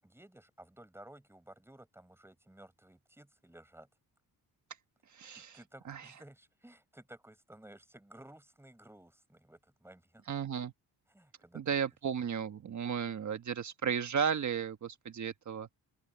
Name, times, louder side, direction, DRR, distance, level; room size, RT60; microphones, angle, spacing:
voice 1, 0.0-3.9 5.3-10.2 11.1-11.9, right 1 dB, 5° right, 6.6 m, -55 dB
voice 2, 5.1-5.6 5.9-6.0 10.3-10.7 11.5-15.7, right 7 dB, 50° right, 1.4 m, -34 dB
open air
wide cardioid pair, 160°, 38 cm